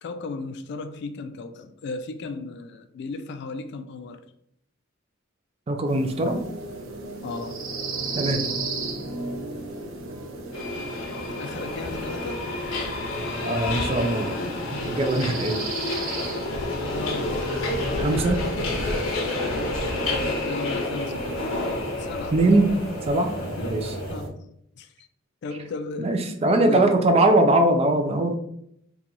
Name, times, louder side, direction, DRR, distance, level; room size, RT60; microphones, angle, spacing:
voice 1, 0.0-4.2 7.2-7.6 11.4-12.4 16.9-17.7 20.4-21.4 22.0-22.4 22.7-22.8 23.6-23.8 24.1-24.5 24.8-24.9 25.4-26.2 26.6-27.2, left 3 dB, 55° left, 9 dB, 0.3 m, -35 dB
voice 2, 5.7-6.4 8.1-8.5 13.4-14.4 14.7-15.6 18.0-18.4 22.3-22.7 23.1-23.9 26.0-28.3, right 2 dB, 30° right, 6 dB, 0.4 m, -21 dB
sound 1, 5.9-24.3, right 2 dB, 90° right, 0.6 m, -34 dB
Subway metro underground, 10.5-24.1, left 2 dB, 90° left, 0.7 m, -30 dB
2.9 x 2.3 x 3.8 m, 0.73 s
head